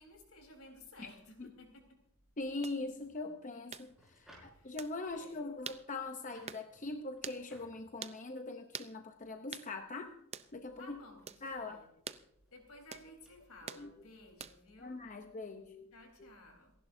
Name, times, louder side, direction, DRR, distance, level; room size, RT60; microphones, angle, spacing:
voice 1, 0.0-1.9 4.4-4.8 5.1-5.4 10.8-11.9 12.5-15.0 15.9-16.7, left 2 dB, 75° left, 3 dB, 4.0 m, -56 dB
voice 2, 2.4-10.1 10.5-11.0 11.4-11.8 13.8-13.9 14.8-15.9 16.2-16.3, left 2 dB, 35° left, 6 dB, 0.8 m, -42 dB
sound 1, 2.6-2.8 3.7-3.9 4.8-4.9 5.7-5.8 6.5-6.7 7.2-7.4 8.0-8.2 8.7-8.9 9.5-9.7 10.3-10.5 11.3-11.4 12.1-12.2 12.9-13.1 13.7-13.9 14.4-14.7, right 7 dB, 30° right, 0.5 m, -45 dB
sound 2, 2.9-14.5, equal, ahead, 5.4 m, -67 dB
28.0 x 11.0 x 2.7 m, 0.75 s
head